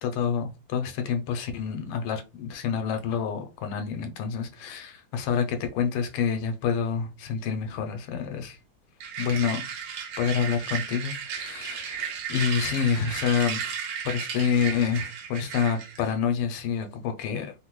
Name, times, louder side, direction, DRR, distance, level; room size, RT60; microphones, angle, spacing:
voice 1, 0.0-8.6 9.2-9.6 10.2-17.5, left 7 dB, 85° left, 1.5 m, -28 dB
sound 1, 9.0-16.1, right 7 dB, 65° right, 1.0 m, -34 dB
3.6 x 2.1 x 3.0 m
omnidirectional pair, 2.4 m